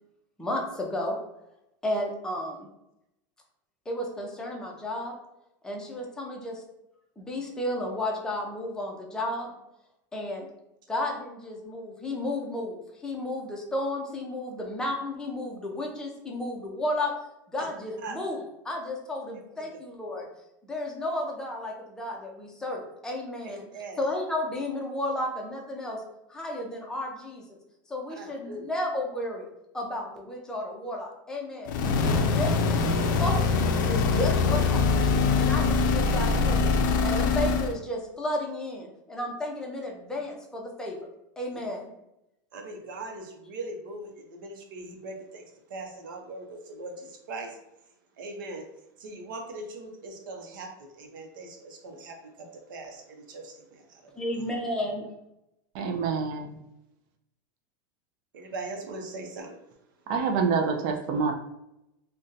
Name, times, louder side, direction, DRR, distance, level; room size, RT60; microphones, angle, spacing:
voice 1, 0.4-1.2 1.8-2.7 3.9-5.1 5.6-6.6 7.2-9.5 10.1-10.5 10.9-17.1 17.5-18.4 18.6-20.3 20.6-23.6 24.0-26.0 26.3-27.6 27.9-29.4 29.7-31.7 32.0-33.4 33.9-35.1 35.4-41.1 41.4-41.9 54.2-55.1, left 1 dB, 5° left, -1 dB, 0.5 m, -33 dB
voice 2, 23.4-24.0 28.1-28.8 37.2-37.3 41.5-41.6 42.5-47.6 48.2-48.6 49.0-54.2 58.3-59.6, right 2 dB, 85° right, 4 dB, 0.7 m, -40 dB
sound 1, 31.7-37.8, left 4 dB, 75° left, 0.4 m, -23 dB
voice 3, 55.7-56.6 60.1-61.3, right 5 dB, 45° right, 4 dB, 0.4 m, -27 dB
2.6 x 2.2 x 3.8 m, 0.86 s
supercardioid pair, 155°, 11 cm